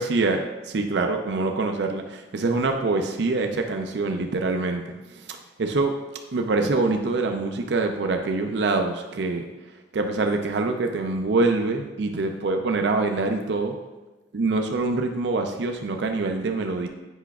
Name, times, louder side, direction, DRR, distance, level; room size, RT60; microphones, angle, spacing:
voice 1, 0.0-4.8 5.1-5.9 6.3-9.5 9.9-13.7 14.3-16.9, right 3 dB, 60° right, 4 dB, 0.4 m, -25 dB
8.1 x 5.6 x 2.3 m, 1.2 s
head